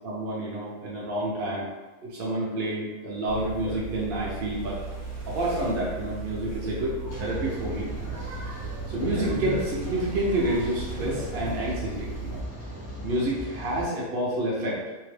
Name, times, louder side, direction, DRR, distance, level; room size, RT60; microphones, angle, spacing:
voice 1, 0.0-1.7 2.0-4.8 5.3-7.9 8.1-12.4 13.0-14.8, right 1 dB, 55° right, -5 dB, 0.8 m, -29 dB
sound 1, 3.3-12.4, right 3 dB, 25° right, 0.8 m, -35 dB
Rain, 7.1-13.8, right 1 dB, 15° left, 0.5 m, -38 dB
2.8 x 2.2 x 3.1 m, 1.2 s
omnidirectional pair, 1.3 m